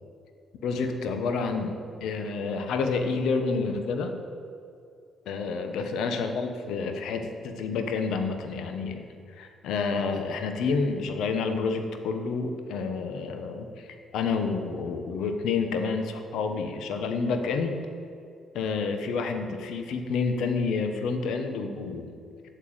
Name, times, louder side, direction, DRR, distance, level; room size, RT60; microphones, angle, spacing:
voice 1, 0.6-4.2 5.3-9.0 9.4-13.9 14.1-17.8 18.5-22.1, left 4 dB, 85° left, 6 dB, 1.2 m, -29 dB
9.2 x 7.1 x 8.9 m, 2.3 s
cardioid pair, 90°, 0 cm